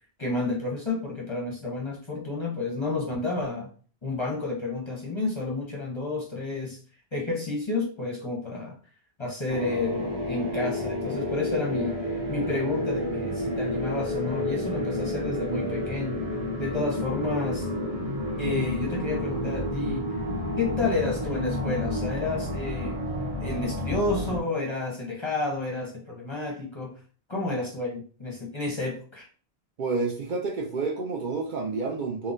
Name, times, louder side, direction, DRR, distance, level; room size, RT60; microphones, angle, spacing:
voice 1, 0.2-3.7 4.0-6.8 7.1-8.8 9.2-16.2 16.6-17.7 18.4-20.1 20.6-23.0 23.4-26.9 27.3-29.3, left 3 dB, 35° left, 0.6 m, -30 dB
sound 1, 9.5-24.4, left 1 dB, 75° right, 1.4 m, -30 dB
voice 2, 29.8-32.3, right 4 dB, 55° right, 0.6 m, -29 dB
3.7 x 2.1 x 2.5 m
omnidirectional pair, 1.1 m